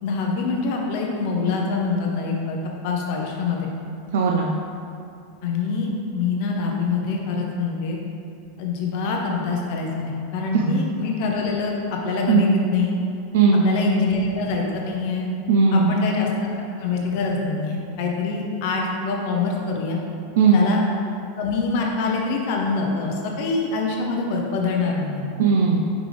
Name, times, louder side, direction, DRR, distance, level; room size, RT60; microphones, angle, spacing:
voice 1, 0.0-3.7 5.4-8.0 8.6-13.0 13.6-15.3 15.7-20.0 20.5-20.8 21.4-25.2, left 4 dB, 50° left, 0 dB, 0.7 m, -25 dB
voice 2, 4.1-4.6 10.5-10.8 12.3-12.7 13.3-13.7 15.5-16.0 20.4-20.7 25.4-25.8, right 5 dB, 75° right, 0 dB, 0.4 m, -18 dB
5.9 x 4.9 x 3.3 m, 2.5 s
supercardioid pair, 165°, 0 cm